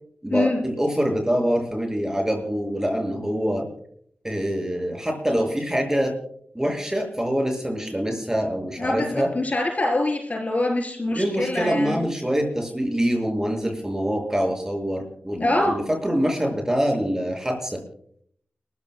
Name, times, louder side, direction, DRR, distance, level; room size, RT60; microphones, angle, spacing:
voice 1, 0.2-3.6 4.2-6.1 6.5-9.3 11.1-17.8, equal, 15° right, 2 dB, 6.3 m, -25 dB
voice 2, 8.8-12.0 15.4-15.8, left 2 dB, 45° left, 1 dB, 4.0 m, -24 dB
30.0 x 14.5 x 2.3 m, 0.66 s
cardioid pair, 55°, 4 cm